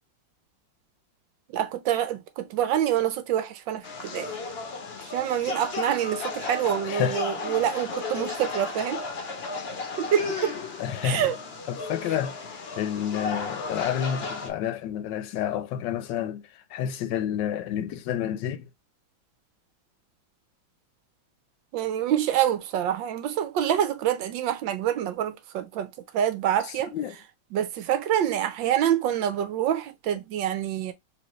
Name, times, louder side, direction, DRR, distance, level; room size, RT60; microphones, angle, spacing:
voice 1, 1.5-4.3 5.1-9.0 10.0-10.5 11.0-11.3 21.7-26.9 27.5-30.9, right 10 dB, 80° right, 1.5 m, -26 dB
sound 1, 3.8-14.5, left 4 dB, 50° left, 0.8 m, -34 dB
voice 2, 6.8-7.2 10.8-11.3 11.7-12.4 12.8-18.7 26.6-27.2, left 9 dB, 75° left, 1.2 m, -29 dB
4.3 x 3.1 x 3.1 m
omnidirectional pair, 2.0 m